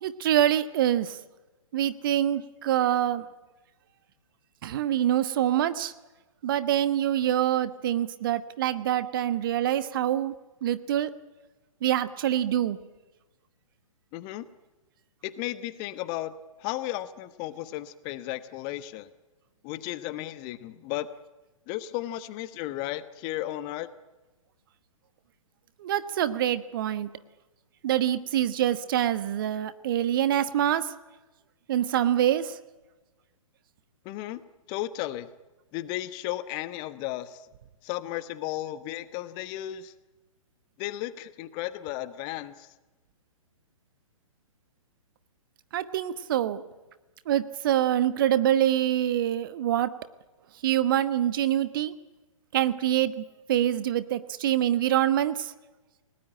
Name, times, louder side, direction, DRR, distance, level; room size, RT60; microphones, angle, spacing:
voice 1, 0.0-1.2 1.7-3.2 4.6-5.9 6.4-10.3 10.6-11.1 11.8-12.8 25.8-27.1 27.8-30.9 31.7-32.6 45.7-46.6 47.3-49.9 50.6-51.9 52.5-55.5, right 11 dB, 40° right, 13 dB, 1.1 m, -25 dB
voice 2, 14.1-14.4 15.2-16.3 16.6-19.1 19.6-21.1 21.7-23.9 34.0-34.4 34.7-35.3 35.7-37.5 37.8-39.9 40.8-42.7, left 15 dB, 25° left, 13 dB, 1.0 m, -34 dB
29.5 x 18.5 x 8.9 m, 1.2 s
figure-of-eight pair, 120°, 17 cm